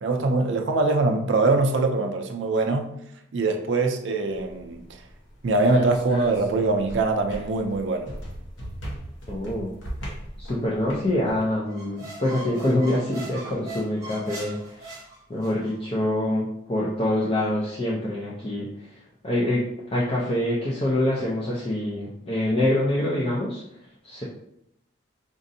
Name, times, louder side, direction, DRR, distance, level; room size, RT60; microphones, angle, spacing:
voice 1, 0.0-3.0 3.3-5.0 5.4-8.1, right 3 dB, 65° right, 5 dB, 0.4 m, -23 dB
sound 1, 4.3-11.4, equal, 70° left, 0.9 m, -39 dB
voice 2, 9.3-9.7 10.4-14.9 15.3-18.9 19.2-23.6 24.0-24.2, left 1 dB, 25° left, -6 dB, 0.5 m, -25 dB
sound 2, 11.7-15.7, right 1 dB, 15° right, 0.8 m, -40 dB
5.0 x 2.5 x 2.6 m, 0.76 s
head